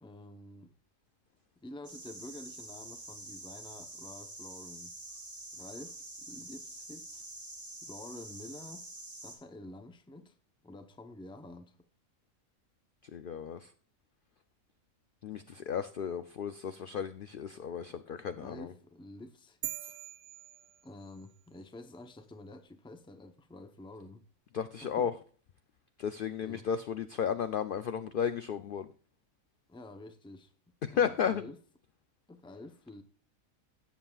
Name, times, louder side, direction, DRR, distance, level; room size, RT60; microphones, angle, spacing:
voice 1, 0.0-0.7 1.6-4.9 5.5-7.3 7.8-8.9 9.2-10.4 10.6-11.8 18.3-20.0 20.8-24.2 24.8-25.1 26.4-26.7 29.7-30.5 30.9-31.6 32.3-33.0, left 2 dB, 5° left, 0.4 m, -49 dB
sound 1, 1.8-9.4, right 2 dB, 15° right, 3.0 m, -47 dB
voice 2, 13.0-13.7 15.2-18.7 24.5-25.1 26.0-28.9 30.8-31.4, left 7 dB, 70° left, 0.5 m, -34 dB
sound 2, 19.6-21.4, right 12 dB, 70° right, 1.0 m, -43 dB
15.5 x 7.2 x 2.4 m
omnidirectional pair, 1.4 m